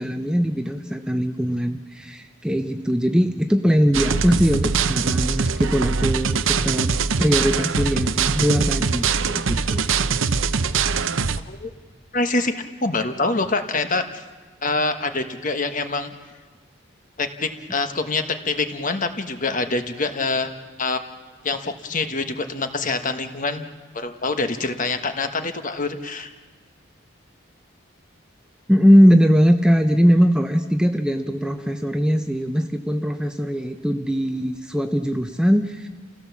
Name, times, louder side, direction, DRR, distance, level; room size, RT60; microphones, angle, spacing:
voice 1, 0.0-6.9 7.2-9.8 28.7-35.9, equal, 5° right, 6 dB, 0.7 m, -20 dB
sound 1, 3.9-11.4, right 5 dB, 70° right, 0.8 m, -22 dB
voice 2, 12.1-12.5 12.8-14.2 14.6-16.1 17.2-20.5 20.8-21.0 21.4-23.7 23.9-26.3, left 3 dB, 40° left, 7 dB, 1.3 m, -25 dB
29.5 x 16.5 x 7.2 m, 1.4 s
head